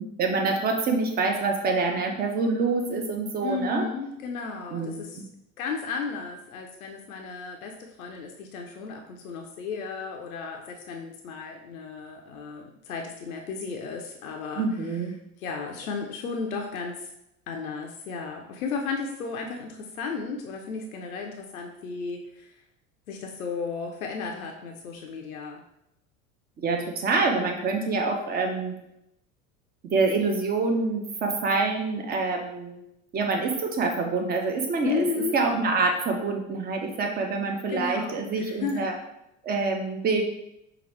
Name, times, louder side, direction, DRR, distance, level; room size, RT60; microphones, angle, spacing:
voice 1, 0.0-3.9 4.7-5.2 14.6-15.1 26.6-28.7 29.8-32.8 33.1-35.0 35.3-38.9 39.4-40.2, right 3 dB, 20° right, 3 dB, 0.6 m, -26 dB
voice 2, 3.4-5.2 5.6-14.7 15.4-17.1 17.5-22.5 23.1-25.6 34.8-35.4 37.7-38.9, left 5 dB, 70° left, 2 dB, 0.6 m, -34 dB
5.7 x 2.3 x 3.1 m, 0.83 s
figure-of-eight pair, 75°, 43 cm